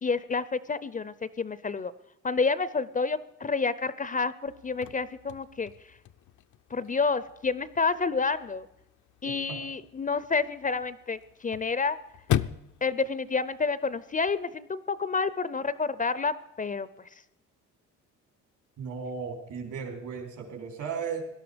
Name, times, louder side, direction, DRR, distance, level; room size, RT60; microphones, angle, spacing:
voice 1, 0.0-1.9 2.2-5.7 6.7-8.7 9.2-12.0 12.8-16.9, left 4 dB, 25° left, 16 dB, 0.6 m, -29 dB
Chirp tweet / Car / Slam, 4.5-14.4, left 11 dB, 70° left, 0.6 m, -38 dB
voice 2, 18.8-21.2, right 6 dB, 70° right, 3 dB, 3.9 m, -35 dB
18.0 x 11.5 x 5.1 m, 0.83 s
cardioid pair, 90°, 31 cm